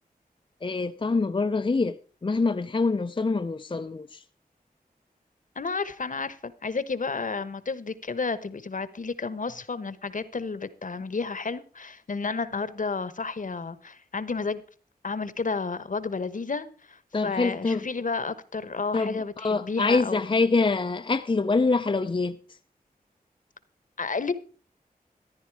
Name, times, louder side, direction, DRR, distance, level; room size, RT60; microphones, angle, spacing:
voice 1, 0.6-4.2 17.1-17.8 18.9-22.4, left 3 dB, 35° left, 0.6 m, -25 dB
voice 2, 5.6-14.6 15.0-20.4 24.0-24.3, left 4 dB, 55° left, 1.1 m, -31 dB
14.0 x 10.5 x 4.7 m
wide cardioid pair, 60°, 16 cm